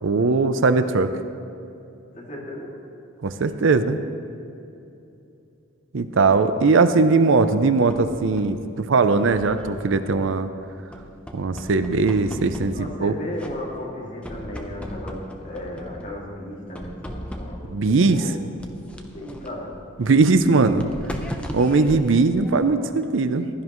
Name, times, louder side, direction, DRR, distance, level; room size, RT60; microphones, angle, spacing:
voice 1, 0.0-1.1 3.2-4.0 5.9-10.5 11.3-13.1 17.7-18.3 20.0-20.9 21.5-23.5, right 3 dB, 70° right, 10 dB, 0.5 m, -19 dB
voice 2, 2.1-2.7 12.7-18.4 19.1-19.7, left 1 dB, 40° left, -4 dB, 2.3 m, -35 dB
sound 1, 7.4-8.6 9.2-10.5 10.9-13.1 13.4-14.0 14.2-16.2 16.7-17.8 18.6-23.1, equal, 5° left, 0.7 m, -38 dB
16.0 x 12.0 x 3.1 m, 2.8 s
head